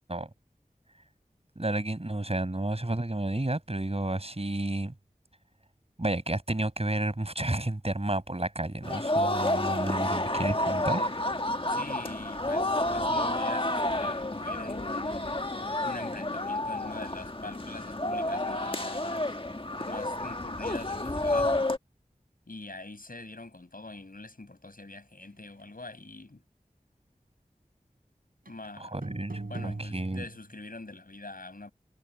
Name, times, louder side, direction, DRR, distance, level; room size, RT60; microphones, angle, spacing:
voice 1, 1.6-4.9 6.0-11.2 28.8-30.2, right 1 dB, 45° right, 6.0 m, -31 dB
sound 1, 8.8-21.8, left 1 dB, 35° left, 1.5 m, -30 dB
voice 2, 11.7-19.4 19.9-21.5 22.5-26.4 28.5-29.0 29.5-31.7, left 2 dB, 70° left, 6.9 m, -44 dB
sound 2, 28.5-28.6 29.0-30.6, right 2 dB, 75° right, 6.3 m, -39 dB
wide cardioid pair, 40°, 15 cm